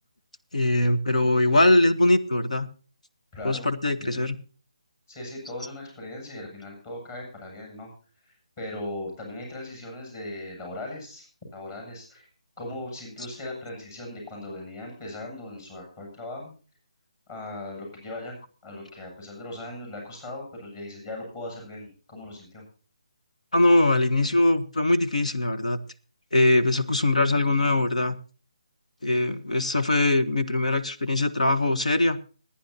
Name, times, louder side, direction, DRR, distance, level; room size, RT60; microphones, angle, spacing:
voice 1, 0.5-2.7 3.4-4.4 23.5-25.8 26.3-28.2 29.0-32.2, left 2 dB, 85° left, 9 dB, 1.3 m, -22 dB
voice 2, 3.3-3.7 4.0-4.2 5.1-7.9 8.2-11.3 11.5-12.3 12.6-16.6 17.3-22.6, left 1 dB, 30° left, 1 dB, 7.7 m, -38 dB
26.0 x 10.0 x 2.7 m, 0.38 s
figure-of-eight pair, 155°, 4 cm